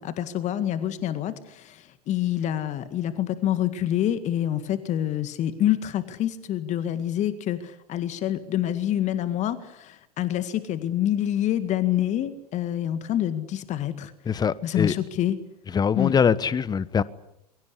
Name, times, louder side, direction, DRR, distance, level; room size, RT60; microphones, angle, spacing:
voice 1, 0.0-14.1 14.6-15.4 16.0-16.1, left 11 dB, 35° left, 2.0 m, -27 dB
voice 2, 14.2-14.9 15.7-17.0, left 6 dB, 20° left, 1.2 m, -23 dB
28.0 x 23.0 x 8.4 m
figure-of-eight pair, 85°, 21 cm